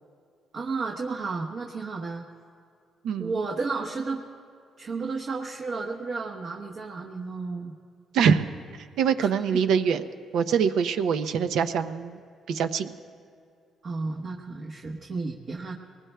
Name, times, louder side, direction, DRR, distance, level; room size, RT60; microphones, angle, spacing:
voice 1, 0.5-2.2 3.2-4.2 4.8-7.7 9.2-9.6 13.8-15.7, right 4 dB, 55° right, -1 dB, 1.1 m, -32 dB
voice 2, 3.0-3.4 8.1-8.5 9.0-10.0 10.3-12.2 12.5-12.9, right 7 dB, 80° right, 9 dB, 0.6 m, -24 dB
23.5 x 20.0 x 2.3 m, 2.4 s
cardioid pair, 90°, 0 cm